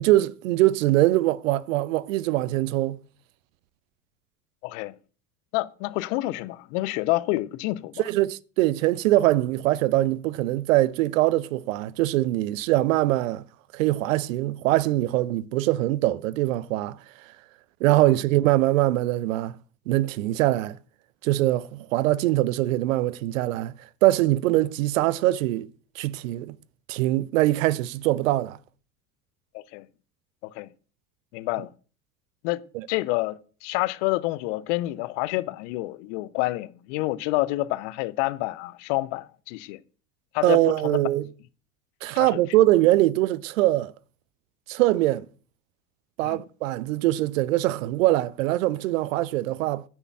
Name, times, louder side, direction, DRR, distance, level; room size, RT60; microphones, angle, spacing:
voice 1, 0.0-3.0 8.0-13.4 13.7-17.0 17.8-19.6 19.9-20.8 21.2-23.7 24.0-25.7 26.0-26.6 26.9-28.6 32.7-32.9 40.4-41.3 42.0-43.9 44.7-45.3 46.2-49.8, right 16 dB, 60° right, 0.6 m, -22 dB
voice 2, 4.6-4.9 5.5-8.0 29.5-29.9 30.4-30.7 31.3-31.7 32.4-32.6 32.9-39.8 40.3-41.0 42.1-42.4 46.2-46.4, left 19 dB, 50° left, 0.7 m, -28 dB
9.7 x 4.5 x 7.3 m
figure-of-eight pair, 70°, 45 cm